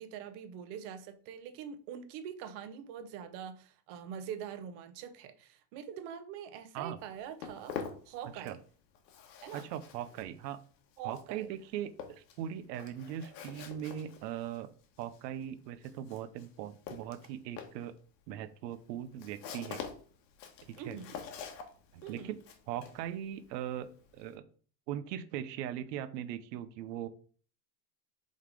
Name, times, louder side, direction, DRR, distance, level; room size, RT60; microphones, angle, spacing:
voice 1, 0.0-7.8 8.1-8.6 9.4-9.7 11.0-11.5 20.8-21.2 22.0-22.3, right 8 dB, 40° right, 0.7 m, -44 dB
Walk footsteps, 7.0-8.7 8.9-24.3, left 7 dB, 80° left, 1.5 m, -47 dB
voice 2, 9.5-10.6 11.0-14.7 15.0-18.0 18.3-19.8 20.6-21.0 21.9-22.4 22.7-23.9 24.1-24.4 24.9-27.1, right 10 dB, 80° right, 0.8 m, -40 dB
5.4 x 3.9 x 4.9 m
supercardioid pair, 170°, 49 cm